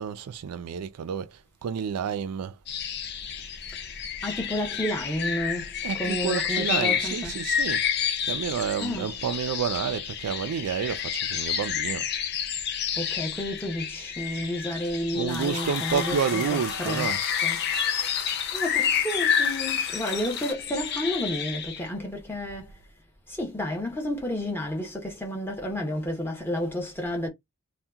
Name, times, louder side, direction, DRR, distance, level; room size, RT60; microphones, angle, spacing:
voice 1, 0.0-2.6 5.8-7.8 8.2-12.1 15.1-17.2, right 7 dB, 90° right, 0.4 m, -30 dB
sound 1, 2.7-21.9, left 8 dB, 45° left, 0.5 m, -30 dB
voice 2, 4.2-7.3 8.8-9.1 13.0-17.1 17.4-17.6 18.2-22.7 23.3-27.3, left 1 dB, 10° left, 0.8 m, -31 dB
sound 2, 15.3-20.5, left 5 dB, 65° left, 0.8 m, -37 dB
2.7 x 2.2 x 3.4 m
head